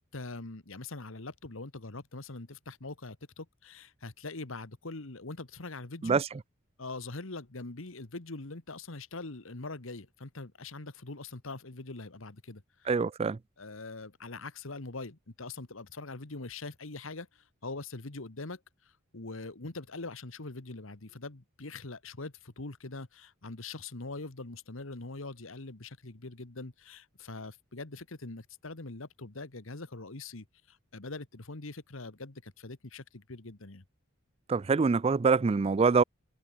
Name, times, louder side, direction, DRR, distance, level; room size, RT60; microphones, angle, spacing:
voice 1, 0.0-6.2 6.8-12.9 13.6-33.8, left 3 dB, 70° left, 1.6 m, -43 dB
voice 2, 12.9-13.4 34.5-36.0, right 4 dB, 30° right, 0.4 m, -25 dB
head